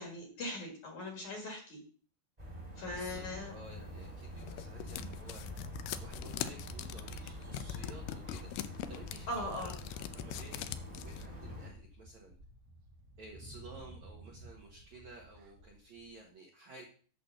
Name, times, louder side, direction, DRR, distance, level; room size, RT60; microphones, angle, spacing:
voice 1, 0.0-1.8 2.8-3.6 9.3-9.7, left 1 dB, 55° left, 1 dB, 2.5 m, -40 dB
sound 1, 2.4-11.7, left 1 dB, 15° right, 1.5 m, -46 dB
voice 2, 2.9-5.6 6.0-8.5 8.9-9.8 10.1-10.6 11.0-12.3 13.2-16.9, right 2 dB, 65° right, -2 dB, 1.8 m, -53 dB
sound 2, 4.0-11.3, left 12 dB, 85° left, 2.2 m, -42 dB
sound 3, 4.3-9.8 10.3-10.4 10.7-16.2, right 1 dB, 85° right, 1.5 m, -55 dB
8.5 x 4.3 x 7.0 m, 0.42 s
omnidirectional pair, 5.1 m